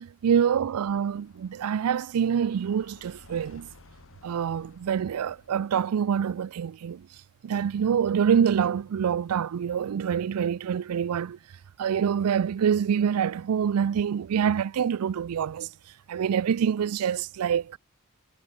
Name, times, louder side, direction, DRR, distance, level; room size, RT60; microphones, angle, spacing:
voice 1, 0.0-3.7 4.2-7.1 7.4-11.4 11.8-15.7 16.1-17.8, right 8 dB, 85° right, 0.4 m, -26 dB
sound 1, 0.9-6.1, left 3 dB, 65° left, 1.6 m, -55 dB
head